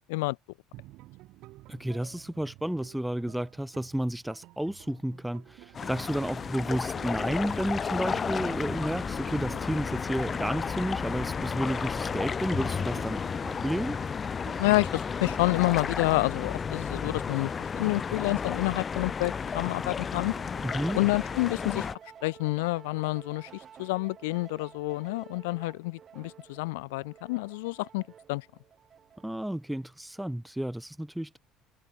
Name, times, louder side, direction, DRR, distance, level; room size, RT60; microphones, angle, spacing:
sound 1, 0.7-15.5, right 18 dB, 70° right, 2.9 m, -51 dB
voice 1, 1.7-14.0 20.6-21.0 29.2-31.4, right 1 dB, 5° right, 0.4 m, -32 dB
sound 2, 5.7-22.0, left 6 dB, 35° left, 1.0 m, -33 dB
voice 2, 14.6-20.3 20.9-21.9 22.2-28.0 28.3-28.5, left 23 dB, 85° left, 0.4 m, -28 dB
sound 3, 20.1-29.5, right 8 dB, 45° right, 2.7 m, -51 dB
open air
supercardioid pair, 85°, 0 cm